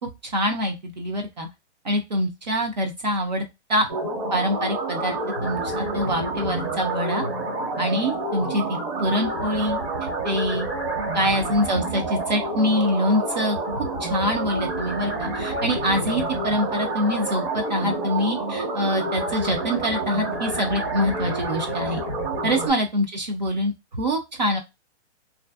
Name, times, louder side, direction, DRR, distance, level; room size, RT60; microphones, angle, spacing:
voice 1, 0.2-1.5 1.8-3.4 3.7-3.9 4.3-7.2 7.8-9.8 10.2-10.7 11.1-22.0 22.4-24.6, equal, 40° right, 4 dB, 0.4 m, -25 dB
sound 1, 3.9-22.7, right 2 dB, 60° right, 1.3 m, -28 dB
2.5 x 2.5 x 2.3 m, 0.23 s
hypercardioid pair, 170°, 35 cm